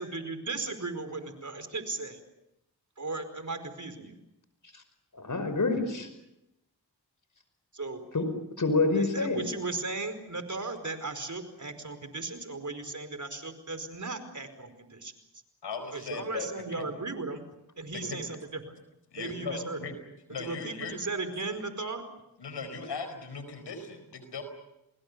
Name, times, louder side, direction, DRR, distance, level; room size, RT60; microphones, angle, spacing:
voice 1, 0.0-2.2 3.0-4.1 7.7-8.0 8.9-15.1 15.9-17.4 17.8-18.6 19.1-19.8 20.4-22.0, right 3 dB, 45° right, 10 dB, 4.9 m, -36 dB
voice 2, 5.1-6.1 8.1-8.3 8.6-9.5, left 3 dB, 50° left, 9 dB, 5.6 m, -27 dB
voice 3, 15.6-16.9 17.9-18.2 19.1-19.9 20.3-20.9 22.4-24.4, left 4 dB, 85° left, 9 dB, 4.8 m, -38 dB
30.0 x 21.0 x 7.0 m, 0.87 s
cardioid pair, 40°, 41 cm